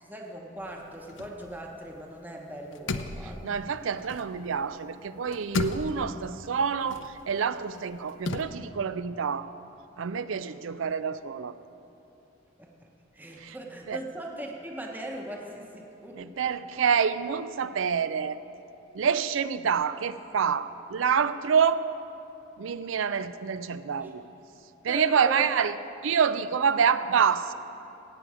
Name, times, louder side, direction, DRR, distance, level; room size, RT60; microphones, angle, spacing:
voice 1, 0.0-3.4 12.6-12.7 13.1-16.5 24.0-24.1 24.9-25.5, right 1 dB, 10° right, 0 dB, 0.9 m, -39 dB
sound 1, 0.6-2.2 2.5-4.8 5.1-8.4, left 3 dB, 70° left, 0.6 m, -36 dB
voice 2, 3.4-9.5 10.0-11.5 13.4-13.6 13.9-14.0 16.1-18.4 18.9-21.8 22.6-24.2 24.8-25.7 26.0-27.5, right 6 dB, 80° right, 13 dB, 0.4 m, -27 dB
17.5 x 8.4 x 4.9 m, 2.8 s
head